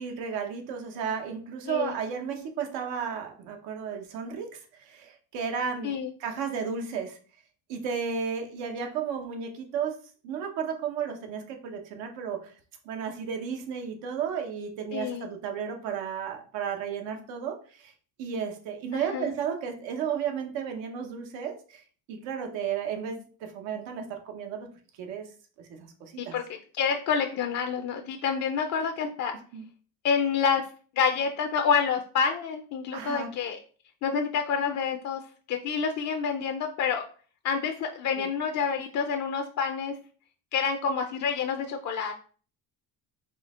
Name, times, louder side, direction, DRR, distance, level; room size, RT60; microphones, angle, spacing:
voice 1, 0.0-7.2 7.7-10.0 10.2-12.5 12.8-17.9 18.2-21.8 22.1-24.7 25.0-25.3 25.6-26.4 29.5-29.7 32.9-33.3 38.2-38.3, right 7 dB, 80° right, 4 dB, 1.0 m, -33 dB
voice 2, 1.7-2.0 5.8-6.1 14.9-15.3 18.9-19.3 26.2-26.4 26.8-29.3 30.0-30.7 31.0-33.6 34.0-35.2 35.5-37.0 37.4-39.9 40.5-42.1, left 6 dB, 45° left, 5 dB, 0.5 m, -28 dB
4.3 x 2.7 x 3.5 m, 0.42 s
cardioid pair, 125°, 43 cm